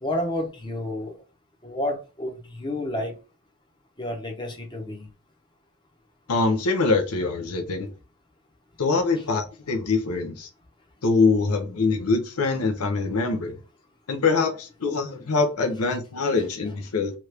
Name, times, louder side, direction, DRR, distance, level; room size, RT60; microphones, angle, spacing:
voice 1, 0.0-1.2 1.6-3.1 4.0-5.0 9.2-9.3 16.4-16.5, left 1 dB, 20° left, 0.7 m, -30 dB
voice 2, 6.3-7.9 8.8-10.5 11.0-13.5 14.1-17.1, left 4 dB, 80° left, 0.6 m, -24 dB
3.0 x 2.4 x 3.2 m
head